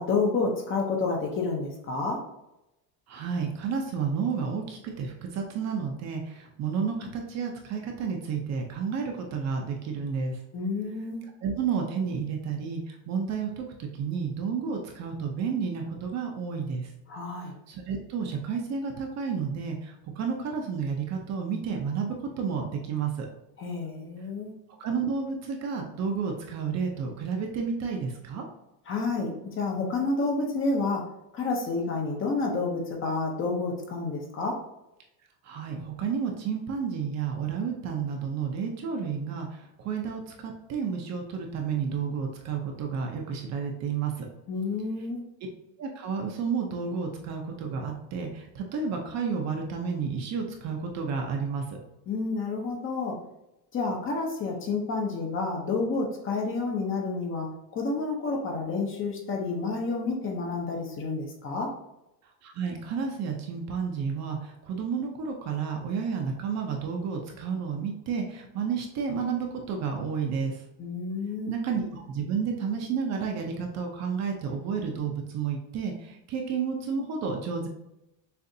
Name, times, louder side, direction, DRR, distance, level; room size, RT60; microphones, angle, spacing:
voice 1, 0.0-2.2 10.5-11.3 17.1-17.5 23.6-24.5 28.9-31.0 31.3-34.6 44.5-45.2 52.1-53.2 53.7-57.5 57.7-61.7 70.8-71.6, left 3 dB, 25° left, 0 dB, 0.7 m, -29 dB
voice 2, 3.1-10.4 11.4-16.9 17.7-23.3 24.8-28.4 35.4-44.3 45.8-51.6 62.4-70.6 71.5-77.7, right 6 dB, 35° right, 2 dB, 0.6 m, -31 dB
6.6 x 2.5 x 2.7 m, 0.89 s
cardioid pair, 155°, 46 cm